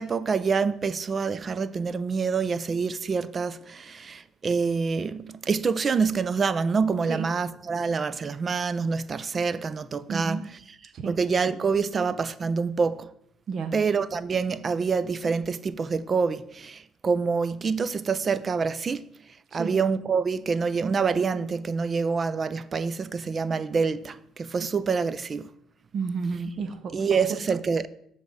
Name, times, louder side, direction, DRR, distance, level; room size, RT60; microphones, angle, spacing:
voice 1, 0.0-10.4 11.1-13.1 13.7-19.0 19.5-25.5 26.9-27.9, right 5 dB, 35° right, 0.3 m, -26 dB
voice 2, 10.1-10.4 10.9-11.2 13.5-13.7 19.5-19.7 25.9-27.4, right 5 dB, 50° right, 0.7 m, -32 dB
7.4 x 3.4 x 6.4 m
cardioid pair, 115°, 0 cm